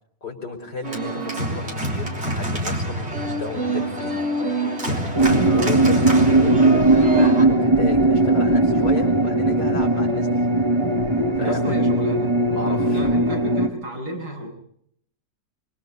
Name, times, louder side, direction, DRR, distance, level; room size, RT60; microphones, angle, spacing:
voice 1, 0.2-4.6 4.9-10.5 11.1-11.8 12.5-13.0, left 3 dB, 70° left, 2 dB, 6.0 m, -34 dB
Organ, 0.8-7.4, right 2 dB, 35° right, 3.9 m, -26 dB
sound 1, 5.1-13.7, right 2 dB, 20° right, 1.1 m, -18 dB
voice 2, 5.4-5.8 11.4-12.3 12.6-14.5, equal, 65° right, 1 dB, 8.4 m, -31 dB
25.5 x 24.5 x 5.6 m, 0.68 s
omnidirectional pair, 1.9 m